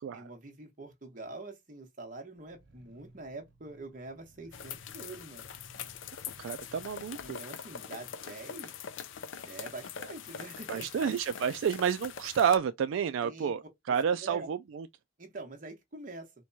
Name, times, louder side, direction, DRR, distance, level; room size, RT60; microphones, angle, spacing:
voice 1, 0.1-5.4 7.2-8.7 9.4-10.9 13.2-13.5 14.2-14.5 15.2-16.3, right 2 dB, 45° right, 1.1 m, -45 dB
Growling, 2.4-7.3, right 1 dB, 60° right, 0.8 m, -59 dB
sound 1, 4.5-12.6, left 7 dB, 75° left, 0.4 m, -43 dB
voice 2, 6.4-7.4 10.7-14.9, right 7 dB, 80° right, 0.3 m, -30 dB
4.4 x 2.2 x 2.6 m
head